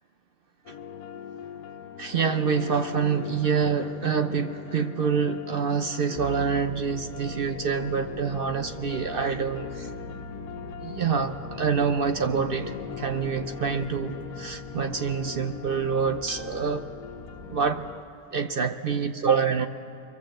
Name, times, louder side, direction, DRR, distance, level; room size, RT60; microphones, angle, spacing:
sound 1, 0.6-18.0, left 8 dB, 80° left, 1.3 m, -41 dB
voice 1, 2.0-9.9 10.8-16.9 17.5-17.8 18.3-19.7, right 6 dB, 50° right, 7 dB, 0.7 m, -26 dB
sound 2, 6.1-17.5, right 1 dB, ahead, 0.9 m, -44 dB
24.5 x 24.0 x 7.7 m, 2.6 s
omnidirectional pair, 1.6 m